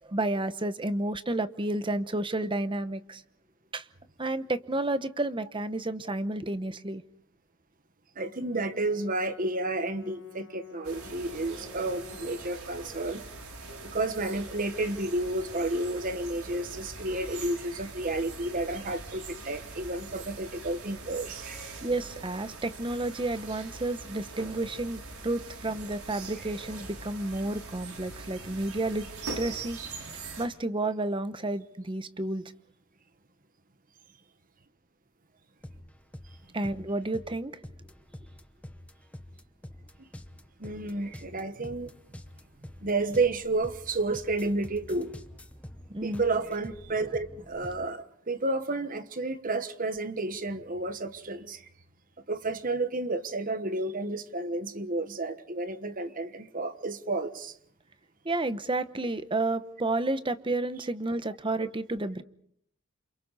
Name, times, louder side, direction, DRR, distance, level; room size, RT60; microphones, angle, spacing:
voice 1, 0.1-3.2 3.7-3.8 4.2-7.0 21.8-29.1 29.4-32.4 36.5-37.5 45.9-46.2 58.2-62.2, right 2 dB, 25° right, 1.0 m, -31 dB
voice 2, 8.1-13.2 13.9-21.7 40.6-41.9 42.8-45.1 46.0-51.7 52.3-57.5, right 2 dB, 40° right, 1.3 m, -31 dB
Brass instrument, 8.2-12.5, left 5 dB, 75° left, 3.0 m, -50 dB
sound 1, 10.8-30.5, right 3 dB, 90° right, 5.9 m, -43 dB
sound 2, 35.6-47.9, left 1 dB, 5° left, 1.0 m, -47 dB
29.0 x 27.0 x 4.2 m
head